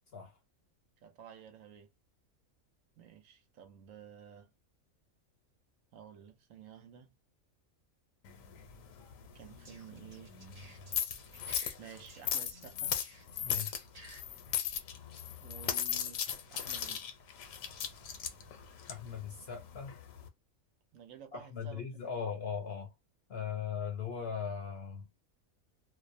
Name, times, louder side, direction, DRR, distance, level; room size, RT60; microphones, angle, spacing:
voice 1, 1.0-1.9 3.0-4.5 5.9-7.1 9.3-10.4 11.8-13.0 15.4-16.2 16.5-17.1 20.9-22.3, right 8 dB, 75° right, 1.0 m, -52 dB
sound 1, 8.2-20.3, left 9 dB, 75° left, 1.0 m, -38 dB
sound 2, 9.7-11.7 12.1-14.2, right 2 dB, 35° right, 0.7 m, -56 dB
voice 2, 13.4-13.8 18.9-19.9 21.3-22.9 23.3-25.1, left 7 dB, 60° left, 0.7 m, -39 dB
2.5 x 2.0 x 2.5 m
omnidirectional pair, 1.4 m